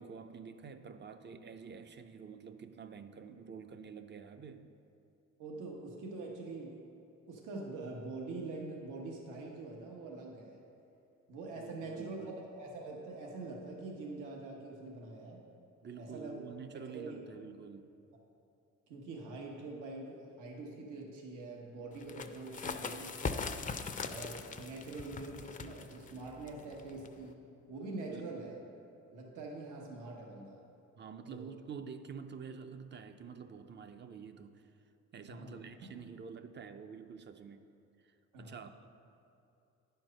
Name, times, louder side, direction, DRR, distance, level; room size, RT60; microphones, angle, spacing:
voice 1, 0.0-4.7 11.5-12.4 15.8-17.9 28.1-28.5 31.0-34.7 35.1-37.7 38.0-38.9, right 6 dB, 35° right, 9 dB, 0.5 m, -48 dB
voice 2, 5.4-6.9 7.3-10.6 11.3-15.4 16.0-16.4 16.7-17.3 18.9-23.6 24.0-28.6 29.1-30.6 31.3-31.5 35.3-35.9 38.3-38.6, right 2 dB, 85° right, -1 dB, 1.2 m, -44 dB
sound 1, 22.0-27.3, left 4 dB, 25° left, 0.5 m, -41 dB
9.8 x 4.5 x 6.4 m, 2.7 s
cardioid pair, 90°, 30 cm